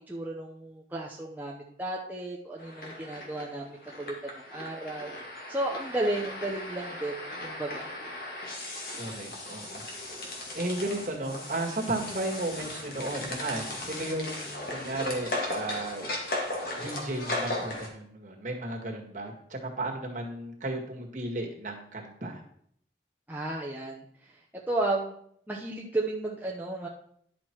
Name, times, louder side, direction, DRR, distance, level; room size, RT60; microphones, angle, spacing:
voice 1, 0.1-4.1 4.5-5.1 5.5-7.9 23.3-24.0 24.7-25.2 25.5-26.9, right 2 dB, 10° right, -3 dB, 0.8 m, -33 dB
sound 1, 2.6-17.9, left 1 dB, 55° left, 2.1 m, -37 dB
voice 2, 9.0-9.8 10.5-16.1 16.8-22.4, right 2 dB, 45° right, 0 dB, 1.9 m, -34 dB
11.0 x 6.0 x 4.6 m, 0.66 s
head